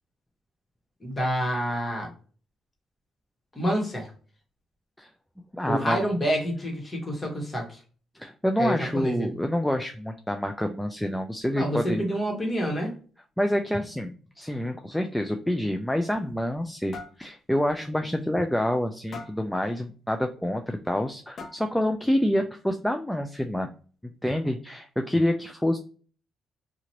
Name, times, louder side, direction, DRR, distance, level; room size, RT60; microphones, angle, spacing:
voice 1, 1.0-2.1 3.5-4.1 5.7-7.8 8.6-9.3 11.6-12.9, equal, 25° left, 0 dB, 1.3 m, -28 dB
voice 2, 5.5-6.0 8.2-12.0 13.4-14.1 14.4-23.7 24.2-25.8, equal, 5° left, 5 dB, 0.3 m, -27 dB
sound 1, 15.9-16.7 16.9-17.2 17.7-17.8 18.2-18.3 19.1-19.5 20.6-20.7 21.4-21.8, left 4 dB, 50° left, 0.6 m, -42 dB
2.9 x 2.5 x 2.8 m, 0.40 s
cardioid pair, 90°, 0 cm